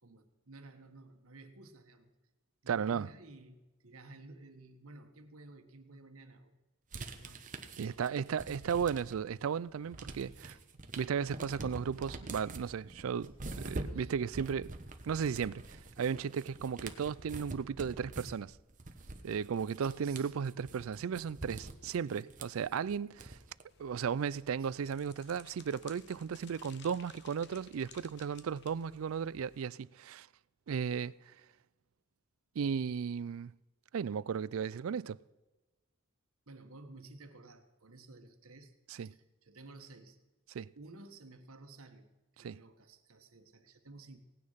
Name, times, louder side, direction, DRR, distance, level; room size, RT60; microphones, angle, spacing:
voice 1, 0.0-2.1 2.6-6.6 7.0-7.5 7.9-8.3 10.5-10.6 12.6-12.7 13.9-14.1 19.8-20.3 20.6-22.3 24.6-24.7 36.5-38.7 39.0-40.2 40.7-42.1 42.4-44.2, right 2 dB, 90° right, 1.4 m, -54 dB
voice 2, 2.7-3.1 7.8-10.6 11.0-14.7 15.0-18.5 19.2-23.4 23.8-30.3 30.7-31.1 32.6-33.5 33.9-35.2 39.0-39.1 40.5-40.7 42.4-42.6, right 7 dB, 75° right, 0.4 m, -35 dB
sound 1, 6.9-9.3 9.7-23.6, right 2 dB, 40° right, 1.1 m, -45 dB
sound 2, 23.7-29.6, left 7 dB, 55° left, 1.0 m, -58 dB
17.5 x 9.6 x 5.7 m
head